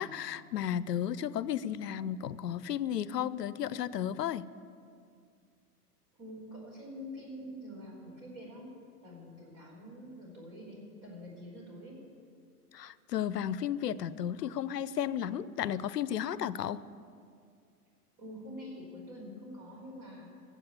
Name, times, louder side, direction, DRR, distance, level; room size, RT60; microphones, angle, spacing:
voice 1, 0.0-4.5 12.7-16.8, left 10 dB, 85° left, 18 dB, 0.6 m, -33 dB
voice 2, 6.2-8.7 9.0-12.0 18.2-20.3, equal, 40° right, -1 dB, 4.6 m, -46 dB
15.5 x 7.5 x 8.3 m, 2.3 s
hypercardioid pair, 105°, 47 cm